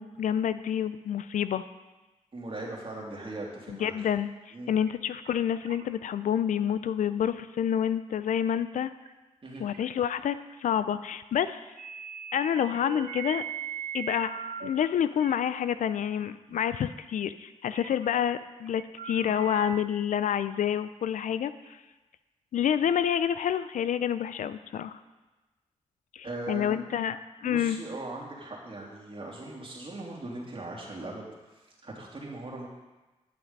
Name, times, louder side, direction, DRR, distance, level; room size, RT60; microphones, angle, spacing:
voice 1, 0.0-1.7 3.7-8.9 9.6-11.7 12.3-13.4 13.9-14.3 14.6-21.8 22.5-25.0 26.1-27.8, left 9 dB, 75° left, 13 dB, 0.4 m, -28 dB
voice 2, 2.3-3.9 4.5-4.7 9.4-9.6 26.2-26.8 27.4-32.7, right 2 dB, 45° right, -2 dB, 2.7 m, -39 dB
sound 1, 4.8-4.9 5.2-5.3 5.6-6.2 6.7-6.9 7.4-7.5 9.0-9.1 9.5-9.9 10.3-10.4 11.8-14.7 15.1-15.4 16.2-16.3 16.5-16.6 17.7-18.2 18.7-19.8, right 8 dB, 80° right, 0.6 m, -39 dB
10.5 x 6.0 x 5.3 m, 1.1 s
supercardioid pair, 45°, 13 cm